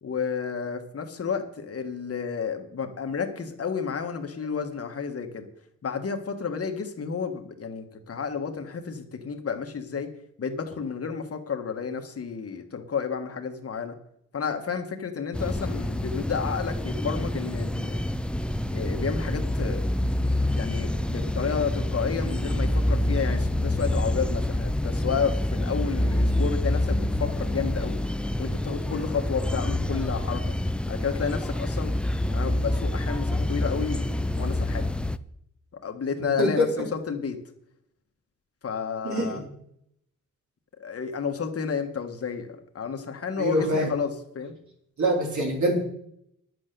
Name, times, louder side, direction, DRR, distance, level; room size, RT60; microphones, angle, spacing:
voice 1, 0.0-5.5 5.8-10.1 10.4-13.9 14.3-18.0 18.7-19.8 20.5-28.0 28.4-30.6 30.9-31.9 32.3-34.9 35.7-37.4 38.6-39.4 40.8-44.5, left 6 dB, 45° left, 5 dB, 1.6 m, -31 dB
sound 1, 15.3-35.2, left 1 dB, 5° left, 0.3 m, -27 dB
voice 2, 39.0-39.4 43.4-43.9 45.0-45.8, equal, 60° right, 0 dB, 3.9 m, -24 dB
10.5 x 7.9 x 6.8 m, 0.72 s
wide cardioid pair, 135°, 33 cm